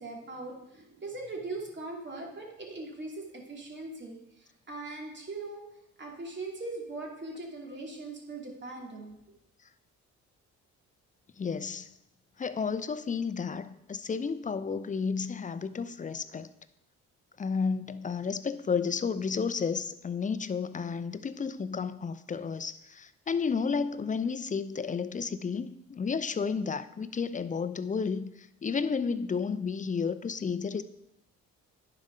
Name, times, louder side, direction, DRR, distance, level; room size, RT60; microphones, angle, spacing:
voice 1, 0.0-5.6 6.0-9.2, right 2 dB, 35° right, 2.7 m, -40 dB
voice 2, 11.4-11.9 12.4-16.5 17.4-30.8, left 5 dB, 25° left, 0.5 m, -32 dB
10.0 x 5.1 x 5.5 m
cardioid pair, 90°, 30 cm